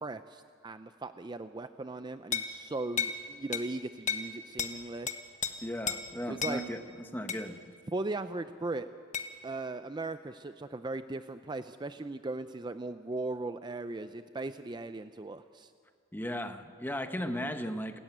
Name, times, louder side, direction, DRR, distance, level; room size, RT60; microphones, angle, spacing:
voice 1, 0.0-5.1 6.3-6.6 7.9-8.9 9.4-15.7, right 2 dB, 25° right, 11 dB, 0.5 m, -38 dB
sound 1, 2.3-2.5 3.0-3.2 3.5-3.7 4.1-4.3 4.6-4.7 5.1-5.5 5.9-6.0 6.4-6.6 7.3-7.5 9.1-9.3, left 7 dB, 40° left, 1.3 m, -32 dB
voice 2, 5.6-7.6 16.1-18.0, equal, 10° left, 8 dB, 1.1 m, -36 dB
28.0 x 13.5 x 9.2 m, 2.2 s
head